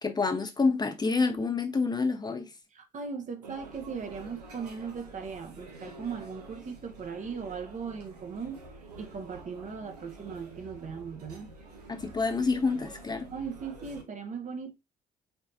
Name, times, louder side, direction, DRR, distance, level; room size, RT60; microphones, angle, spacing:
voice 1, 0.0-2.5 11.9-13.3, left 4 dB, 20° left, 0.7 m, -28 dB
voice 2, 2.7-8.7 9.0-11.5 13.3-14.8, right 6 dB, 40° right, 0.9 m, -38 dB
sound 1, 3.4-14.0, right 2 dB, 80° right, 0.7 m, -48 dB
4.2 x 3.5 x 2.6 m
figure-of-eight pair, 45°, 20 cm